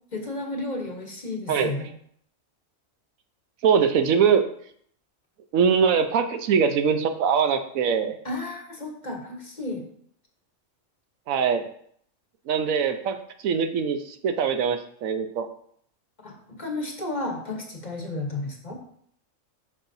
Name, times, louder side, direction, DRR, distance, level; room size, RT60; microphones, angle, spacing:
voice 1, 0.1-1.9 8.2-9.8 16.2-18.8, left 2 dB, 35° left, 2 dB, 1.1 m, -32 dB
voice 2, 1.5-1.9 3.6-4.4 5.5-8.1 11.3-11.6 12.5-15.5, right 6 dB, 80° right, 7 dB, 1.1 m, -22 dB
8.7 x 5.5 x 2.7 m, 0.64 s
omnidirectional pair, 1.4 m